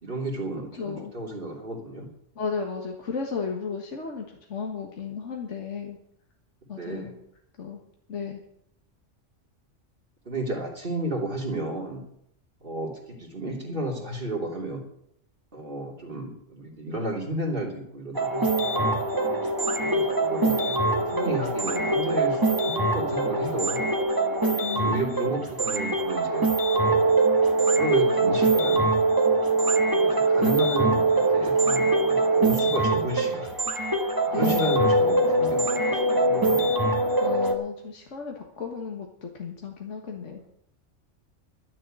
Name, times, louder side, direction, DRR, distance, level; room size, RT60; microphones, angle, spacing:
voice 1, 0.0-2.1 6.8-7.1 10.2-12.0 12.6-14.8 15.5-19.0 19.7-23.9 24.7-27.2 27.7-28.9 29.8-33.5 34.3-36.8, right 2 dB, 45° right, 0 dB, 3.2 m, -32 dB
voice 2, 0.8-1.1 2.4-6.0 6.7-7.2 7.6-7.8 8.1-8.4 24.6-25.3 34.3-34.8 37.2-40.4, left 5 dB, 75° left, 2 dB, 1.7 m, -34 dB
sound 1, 18.2-37.6, right 2 dB, 15° right, 1.4 m, -23 dB
12.0 x 7.4 x 8.8 m, 0.73 s
omnidirectional pair, 1.3 m